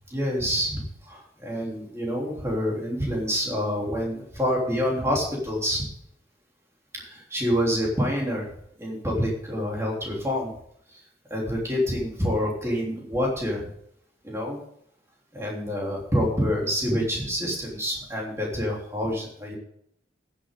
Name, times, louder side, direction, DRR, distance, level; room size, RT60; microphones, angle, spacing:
voice 1, 0.1-5.8 7.0-8.4 8.8-10.5 11.3-13.7 14.2-14.6 15.3-19.6, equal, 15° right, -2 dB, 3.3 m, -27 dB
15.0 x 8.7 x 3.7 m, 0.70 s
head